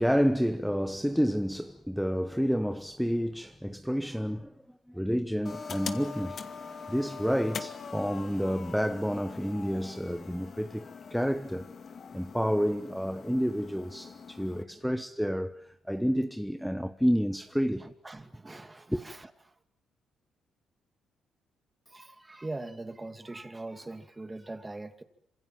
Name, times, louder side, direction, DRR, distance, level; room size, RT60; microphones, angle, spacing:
voice 1, 0.0-6.4 6.9-11.7 12.1-17.9 18.9-19.0, equal, ahead, 1.2 m, -29 dB
sound 1, 5.5-14.6, left 5 dB, 50° left, 2.3 m, -43 dB
voice 2, 14.7-15.0 17.8-19.5 21.9-25.0, right 2 dB, 15° right, 2.4 m, -42 dB
27.0 x 26.0 x 7.7 m
cardioid pair, 90°, 0 cm